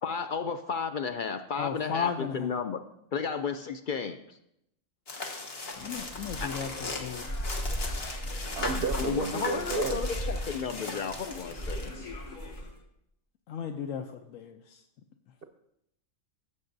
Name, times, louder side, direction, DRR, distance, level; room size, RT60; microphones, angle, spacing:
voice 1, 0.0-2.8 3.1-4.2 6.4-6.5 9.0-12.1, left 6 dB, 65° left, 8 dB, 0.5 m, -33 dB
voice 2, 1.6-2.6 5.8-7.4 13.5-14.8, left 7 dB, 80° left, 5 dB, 1.0 m, -35 dB
sound 1, 5.1-11.9, left 3 dB, 50° left, 1.3 m, -38 dB
sound 2, 5.6-12.8, equal, 35° left, 1.0 m, -37 dB
voice 3, 8.5-10.0, right 5 dB, 55° right, 7 dB, 0.7 m, -32 dB
16.0 x 7.7 x 2.6 m, 0.80 s
omnidirectional pair, 1.4 m